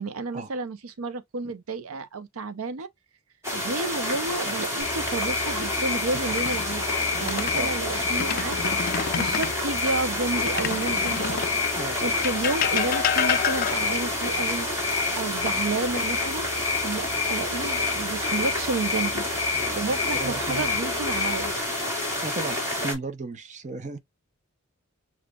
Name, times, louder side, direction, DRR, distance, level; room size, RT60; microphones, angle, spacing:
voice 1, 0.0-2.9 3.5-6.8 7.2-11.4 11.7-14.7 15.2-16.5 16.8-21.5, right 3 dB, 90° right, 0.6 m, -31 dB
sound 1, 3.4-22.9, left 1 dB, 15° right, 2.1 m, -29 dB
sound 2, 4.8-21.5, left 6 dB, 25° left, 1.5 m, -31 dB
sound 3, 6.2-7.6 8.1-9.6 10.5-11.6 12.2-14.1 16.0-16.7 17.1-17.3 20.2-20.8 21.5-22.2, left 8 dB, 40° left, 0.3 m, -30 dB
voice 2, 19.5-19.9 20.2-20.7 22.2-24.0, right 3 dB, 35° right, 0.6 m, -35 dB
6.8 x 2.3 x 2.3 m
head